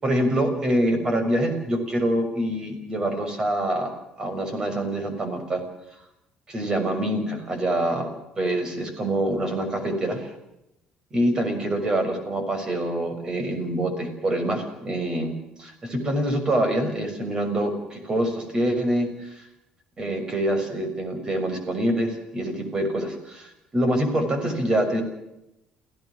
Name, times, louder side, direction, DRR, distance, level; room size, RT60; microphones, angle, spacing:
voice 1, 0.0-5.6 6.5-8.1 8.4-10.3 11.1-19.5 20.0-25.0, right 1 dB, 25° right, 7 dB, 6.3 m, -25 dB
29.0 x 17.0 x 6.5 m, 0.85 s
cardioid pair, 135°, 3 cm